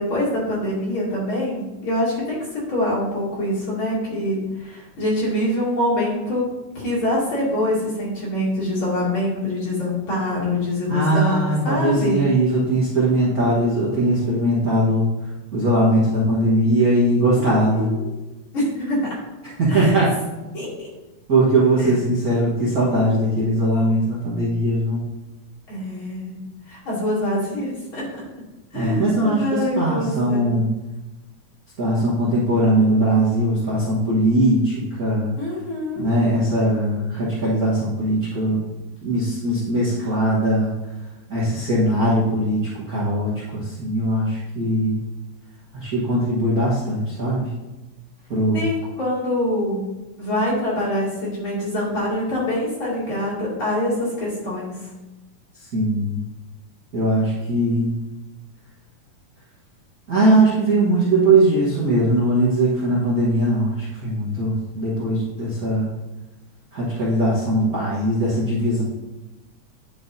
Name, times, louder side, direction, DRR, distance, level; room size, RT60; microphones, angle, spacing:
voice 1, 0.0-6.5 6.7-12.2 17.3-18.1 18.5-19.1 19.7-20.0 20.5-20.9 21.8-21.9 25.7-26.4 26.7-28.1 28.7-30.6 35.4-36.1 48.5-49.9 50.2-54.9, left 1 dB, 40° left, -8 dB, 3.3 m, -25 dB
voice 2, 10.9-15.1 15.5-17.9 19.6-20.1 21.3-25.0 28.7-30.7 31.8-35.3 36.0-38.6 39.0-40.9 41.3-45.0 45.7-47.5 48.3-48.6 55.5-56.2 56.9-58.0 60.1-65.9 66.7-68.8, right 1 dB, 55° right, -7 dB, 1.0 m, -20 dB
9.4 x 5.6 x 2.7 m, 1.1 s
omnidirectional pair, 3.7 m